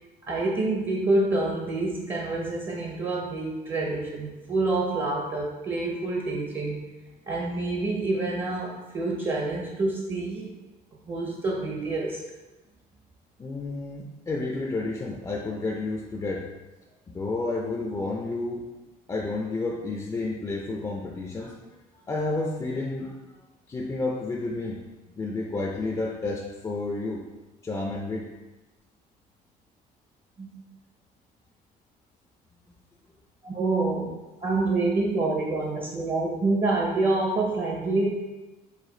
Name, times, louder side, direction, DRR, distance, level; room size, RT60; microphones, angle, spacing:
voice 1, 0.3-6.8 7.3-10.5 11.1-12.2 30.4-30.5 33.4-34.1 34.4-38.1, right 2 dB, 30° right, -2 dB, 0.7 m, -27 dB
voice 2, 13.4-16.5 17.1-18.7 19.1-21.6 22.1-23.4 23.7-24.8 25.2-27.2 27.6-28.3, left 3 dB, 20° left, -1 dB, 0.5 m, -31 dB
4.9 x 2.4 x 3.8 m, 1.1 s
cardioid pair, 110°, 17 cm